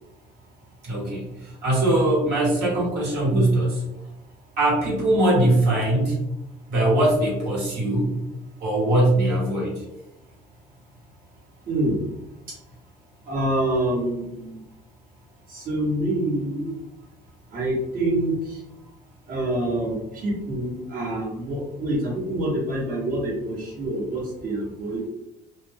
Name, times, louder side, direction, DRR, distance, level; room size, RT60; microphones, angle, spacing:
voice 1, 0.8-3.8 4.6-6.2 6.7-8.2 8.6-9.8, right 1 dB, 75° right, -5 dB, 1.4 m, -21 dB
voice 2, 11.7-12.0 13.3-14.6 15.5-16.7 17.5-18.6 19.3-25.1, right 1 dB, 55° right, -7 dB, 1.3 m, -26 dB
2.6 x 2.2 x 3.3 m, 0.91 s
cardioid pair, 110°, 17 cm